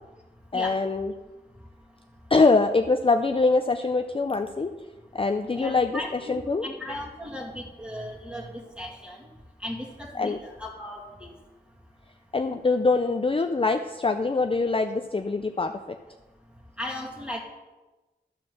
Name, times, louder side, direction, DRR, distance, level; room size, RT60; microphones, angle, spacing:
voice 1, 0.5-1.1 2.3-4.7 5.1-6.0 6.3-6.7 10.1-10.4 12.3-15.7, left 3 dB, 30° left, 7 dB, 0.4 m, -23 dB
voice 2, 5.6-9.3 9.6-11.3 16.8-17.4, left 1 dB, 5° right, -1 dB, 2.1 m, -36 dB
12.5 x 4.3 x 6.3 m, 1.2 s
wide cardioid pair, 75°, 18 cm